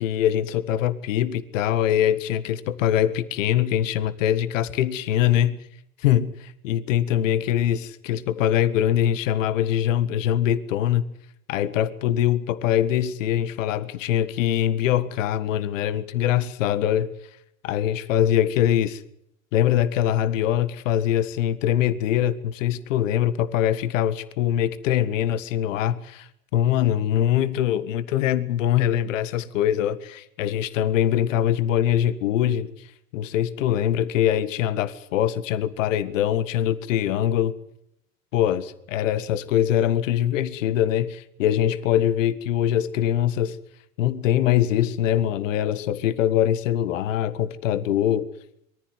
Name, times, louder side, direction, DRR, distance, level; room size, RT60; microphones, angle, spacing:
voice 1, 0.0-5.6 6.0-11.0 11.5-17.1 17.6-19.0 19.5-32.9 33.1-37.5 38.3-43.6 44.0-48.3, left 11 dB, 65° left, 1.6 m, -23 dB
23.0 x 14.5 x 9.4 m
hypercardioid pair, 85°, 42 cm